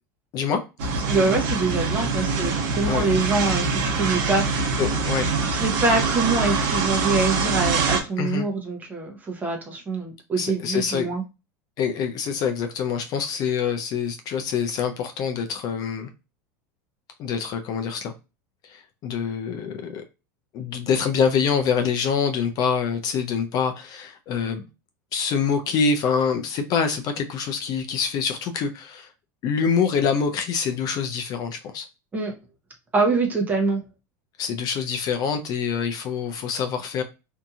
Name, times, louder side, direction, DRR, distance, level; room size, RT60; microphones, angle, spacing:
sound 1, 0.8-8.0, right 4 dB, 75° right, 0.8 m, -24 dB
voice 1, 1.0-3.7 3.9-4.5 5.4-11.2 32.1-32.3 32.9-33.8, right 3 dB, 15° right, 1 dB, 0.8 m, -24 dB
voice 2, 4.8-5.3 8.2-8.5 10.4-11.1 11.8-16.1 17.2-18.1 18.6-20.0 20.5-24.6 25.1-29.1 29.4-31.9 34.4-37.0, left 6 dB, 40° left, 7 dB, 0.4 m, -25 dB
2.8 x 2.6 x 2.3 m, 0.27 s
supercardioid pair, 135°, 10 cm